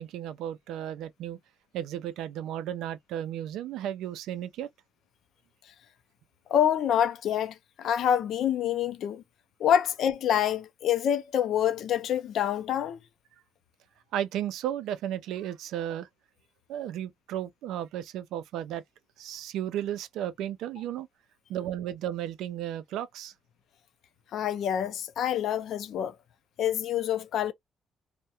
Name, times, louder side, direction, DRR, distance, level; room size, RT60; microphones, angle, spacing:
voice 1, 0.0-1.4 1.7-4.7 14.1-16.1 16.7-18.8 19.2-21.1 21.5-23.3, right 11 dB, 90° right, 0.3 m, -34 dB
voice 2, 6.5-9.2 9.6-13.0 24.3-26.2 26.6-27.5, left 9 dB, 75° left, 0.4 m, -26 dB
2.3 x 2.1 x 2.8 m
cardioid pair, 90°, 0 cm